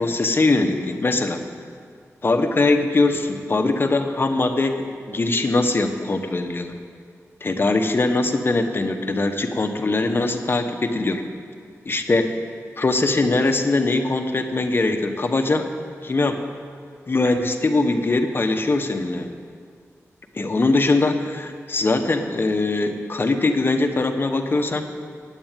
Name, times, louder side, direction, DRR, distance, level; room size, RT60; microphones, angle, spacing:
voice 1, 0.0-1.4 2.2-6.7 7.4-11.2 11.8-12.3 12.8-15.7 16.0-16.4 17.1-19.3 20.3-24.9, left 2 dB, 40° left, 5 dB, 1.0 m, -21 dB
9.1 x 8.7 x 9.0 m, 2.1 s
cardioid pair, 70°, 5 cm